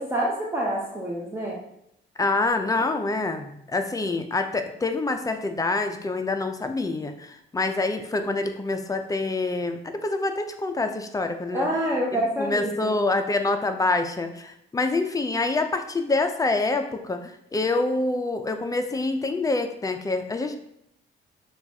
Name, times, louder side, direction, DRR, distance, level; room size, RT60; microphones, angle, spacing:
voice 1, 0.0-1.6 11.5-13.0, right 1 dB, 10° right, -4 dB, 0.7 m, -27 dB
voice 2, 2.2-11.7 12.4-20.6, left 3 dB, 15° left, 7 dB, 0.5 m, -26 dB
6.5 x 2.4 x 2.7 m, 0.77 s
cardioid pair, 90°, 20 cm